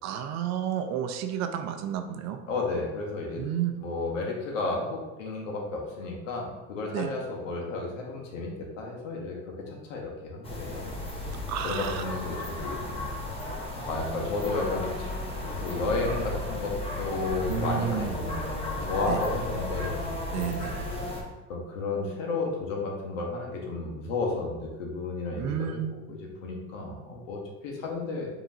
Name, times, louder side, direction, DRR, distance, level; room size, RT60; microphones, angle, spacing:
voice 1, 0.0-2.4 3.4-3.7 6.9-7.1 11.5-12.0 17.5-18.1 19.1-19.2 20.3-20.8 25.4-25.9, right 9 dB, 45° right, 7 dB, 0.5 m, -31 dB
voice 2, 2.5-3.5 3.8-9.4 9.7-10.9 11.3-13.1 13.8-15.2 15.6-20.0 20.3-20.5 20.9-21.1 21.5-25.8 26.1-28.3, left 3 dB, 90° left, -1 dB, 1.2 m, -33 dB
Village Edge Atmos, 10.4-21.2, left 2 dB, 15° left, 0.9 m, -34 dB
5.2 x 3.0 x 2.7 m, 1.1 s
supercardioid pair, 105°, 37 cm